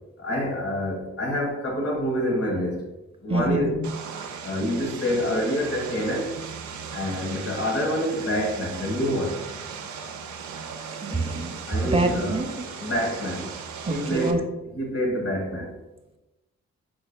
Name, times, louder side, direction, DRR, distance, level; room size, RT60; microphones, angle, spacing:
voice 1, 0.2-2.9 3.2-3.8 4.4-6.3 6.9-9.4 11.7-13.5 13.9-15.7, equal, 50° left, 0 dB, 1.6 m, -27 dB
voice 2, 3.3-3.8 11.0-11.6 11.9-12.7 13.9-14.4, right 2 dB, 20° right, 4 dB, 0.8 m, -26 dB
Vehicle, 3.8-14.3, right 6 dB, 80° right, 0.6 m, -37 dB
4.8 x 4.4 x 2.3 m, 1.0 s
supercardioid pair, 55°, 29 cm